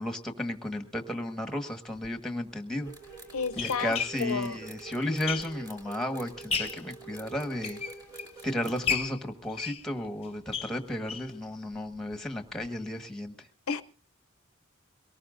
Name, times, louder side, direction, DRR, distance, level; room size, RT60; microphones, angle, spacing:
voice 1, 0.0-2.9 3.6-7.8 8.4-13.5, left 1 dB, ahead, 1.4 m, -33 dB
sound 1, 2.0-2.1 2.9-5.8 6.2-6.9 7.4-8.4 8.8-11.4 11.7-11.8 12.1-12.2 12.6-12.7, left 6 dB, 30° left, 0.9 m, -35 dB
sound 2, 2.8-8.9, right 3 dB, 20° right, 2.5 m, -46 dB
voice 2, 3.3-4.6 13.7-13.8, left 5 dB, 85° left, 0.7 m, -31 dB
23.0 x 18.5 x 2.5 m
head